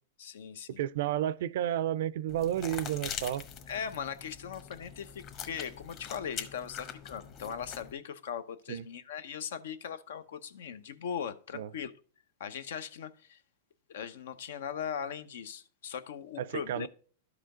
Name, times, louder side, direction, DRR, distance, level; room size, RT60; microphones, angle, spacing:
voice 1, 0.2-0.8 3.7-11.9 12.4-13.4 13.9-16.9, left 8 dB, 75° left, 0.8 m, -39 dB
voice 2, 0.8-3.4 8.7-8.9 11.5-11.7 16.4-16.9, right 11 dB, 65° right, 0.4 m, -31 dB
sound 1, 2.3-7.9, left 8 dB, 35° left, 1.2 m, -43 dB
12.0 x 5.0 x 3.7 m
supercardioid pair, 145°, 0 cm